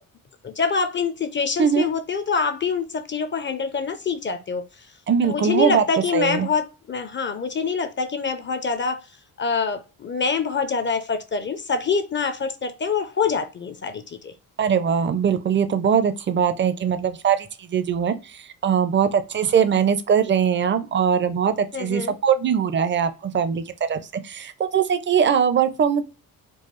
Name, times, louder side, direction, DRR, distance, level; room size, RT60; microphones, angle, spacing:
voice 1, 0.4-4.9 5.2-9.0 9.4-14.3 21.7-22.1, left 5 dB, 30° left, 0.4 m, -25 dB
voice 2, 5.1-5.8 6.1-6.5 14.6-26.0, right 7 dB, 30° right, 0.4 m, -21 dB
4.6 x 2.3 x 3.0 m
cardioid pair, 130°, 37 cm